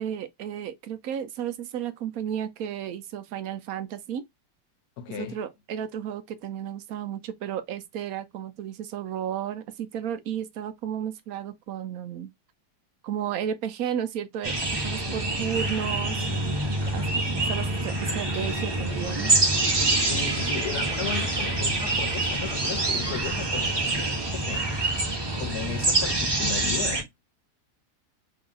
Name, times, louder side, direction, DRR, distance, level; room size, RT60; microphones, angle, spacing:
voice 1, 0.0-4.2 5.2-12.3 13.0-14.5 14.8-16.6 16.9-19.3, right 9 dB, 70° right, 0.9 m, -33 dB
voice 2, 5.0-5.4 16.8-17.1 20.0-24.7 25.3-27.1, left 9 dB, 70° left, 1.2 m, -36 dB
sound 1, 14.4-27.0, right 2 dB, 30° right, 0.4 m, -26 dB
3.1 x 2.8 x 3.7 m
omnidirectional pair, 1.8 m